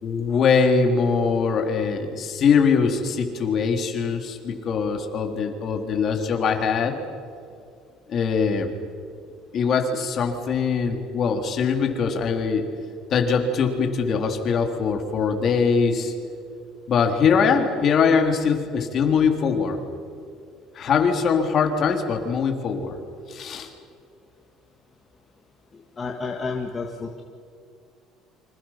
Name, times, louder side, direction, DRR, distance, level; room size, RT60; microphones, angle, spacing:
voice 1, 0.0-7.0 8.1-8.7 9.5-12.7 13.1-16.1 16.9-19.8 20.7-23.0 23.3-23.7, left 5 dB, 40° left, 4 dB, 3.3 m, -22 dB
voice 2, 25.7-27.2, left 4 dB, 25° left, 1 dB, 2.0 m, -31 dB
29.5 x 26.0 x 5.8 m, 2.4 s
cardioid pair, 135°, 0 cm